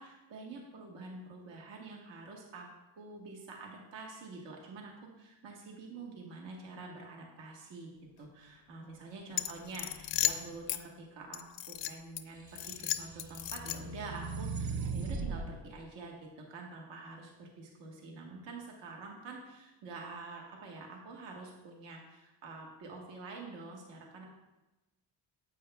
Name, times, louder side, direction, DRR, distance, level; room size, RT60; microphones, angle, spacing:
voice 1, 0.0-2.7 2.9-7.9 8.2-24.3, right 3 dB, 70° right, 0 dB, 1.4 m, -47 dB
sound 1, 9.3-10.8 11.3-12.2 12.6-14.0, left 14 dB, 90° left, 0.6 m, -35 dB
sound 2, 12.6-15.5, right 4 dB, 40° right, 0.6 m, -38 dB
9.9 x 7.9 x 2.3 m, 1.0 s
cardioid pair, 140°, 46 cm